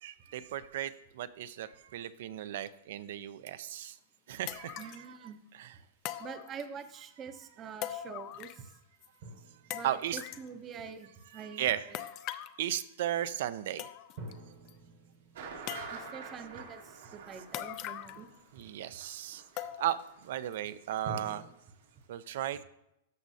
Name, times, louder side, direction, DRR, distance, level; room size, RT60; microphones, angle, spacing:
voice 1, 0.0-4.0 4.3-5.2 5.6-5.7 9.8-10.2 11.4-11.9 12.6-13.9 18.5-21.4 22.1-22.6, right 12 dB, 60° right, 15 dB, 0.5 m, -36 dB
sound 1, 3.7-3.8 4.5-5.1 6.0-6.9 7.8-8.7 9.0-9.1 9.7-10.5 11.9-12.6 13.4-13.5 13.8-14.3 14.7-14.8 15.7-16.3 17.5-18.3 18.6-18.7 19.6-20.1 20.5-20.6 21.3-21.4, left 13 dB, 30° left, 0.4 m, -41 dB
voice 2, 4.8-5.4 6.2-8.7 9.7-12.0 15.9-18.3, right 6 dB, 20° right, 9 dB, 0.6 m, -45 dB
sound 2, 9.2-11.2 14.2-17.4 21.0-21.5, right 2 dB, 40° right, 1.2 m, -48 dB
sound 3, 15.3-21.0 21.2-21.3 21.8-21.9, right 5 dB, 80° right, 2.3 m, -47 dB
13.5 x 6.2 x 2.8 m, 0.81 s
supercardioid pair, 165°, 0 cm